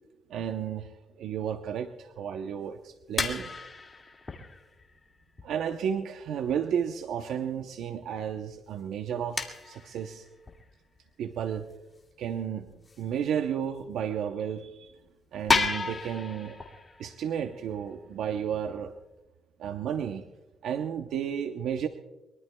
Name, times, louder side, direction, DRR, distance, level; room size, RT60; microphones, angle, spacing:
voice 1, 0.3-3.5 5.4-10.3 11.2-11.7 12.2-12.7 13.0-15.0 15.3-16.6 17.0-18.9 19.6-20.3 20.6-21.9, right 8 dB, 80° right, 7 dB, 0.8 m, -32 dB
sound 1, 2.4-2.5 3.2-5.5 6.0-6.1 6.5-6.6 7.1-7.2 7.6-7.7 8.7-8.8 9.4-10.7 11.6-11.7 12.1-12.2 12.7-13.0 13.8-14.0 14.3-14.4 14.9-15.0 15.5-18.9, left 4 dB, 30° left, 2.0 m, -33 dB
23.5 x 22.5 x 2.3 m, 1.1 s
cardioid pair, 90°, 0 cm